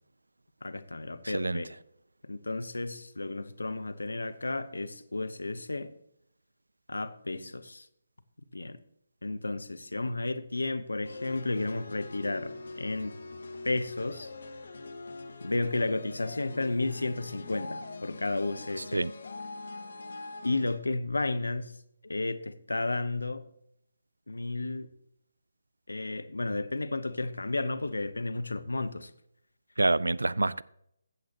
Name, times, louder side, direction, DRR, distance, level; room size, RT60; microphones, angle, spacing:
voice 1, 0.6-1.7 2.2-5.9 6.9-7.9 8.5-8.8 9.2-13.2 13.6-14.3 15.4-19.0 20.4-21.8 22.0-23.5 24.3-24.9 25.9-29.1, left 2 dB, 80° left, 0.8 m, -32 dB
voice 2, 1.2-1.6 18.9-19.1 29.8-30.6, right 2 dB, 80° right, 0.4 m, -27 dB
sound 1, 11.0-20.8, left 3 dB, 60° left, 1.1 m, -43 dB
14.5 x 8.1 x 2.9 m
figure-of-eight pair, 145°, 0 cm